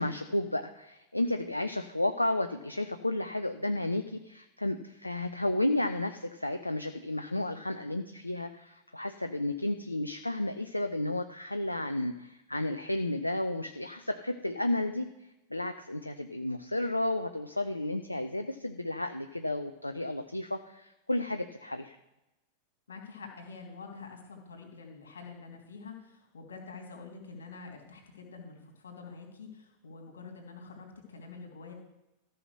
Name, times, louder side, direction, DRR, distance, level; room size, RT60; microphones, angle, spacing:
voice 1, 0.0-22.0, left 1 dB, 85° left, 8 dB, 0.5 m, -32 dB
voice 2, 22.9-31.7, left 4 dB, 70° left, 1 dB, 2.8 m, -47 dB
13.5 x 5.7 x 6.4 m, 0.96 s
figure-of-eight pair, 90°, 0 cm